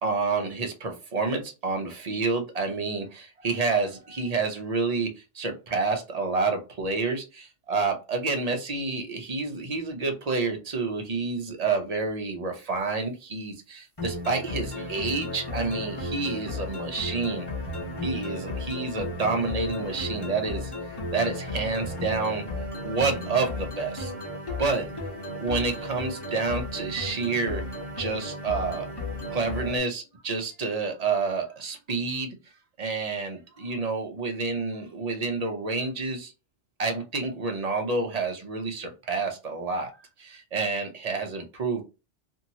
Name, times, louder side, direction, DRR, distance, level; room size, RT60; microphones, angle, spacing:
voice 1, 0.0-17.5 18.0-20.7 21.1-22.4 22.8-24.1 24.6-24.9 25.4-27.6 28.0-28.9 29.3-32.3 32.8-36.3 36.8-39.9 40.2-41.8, right 4 dB, 40° right, 4 dB, 0.6 m, -29 dB
sound 1, 14.0-29.8, left 2 dB, 20° left, 1.1 m, -34 dB
2.8 x 2.7 x 2.7 m, 0.29 s
omnidirectional pair, 1.3 m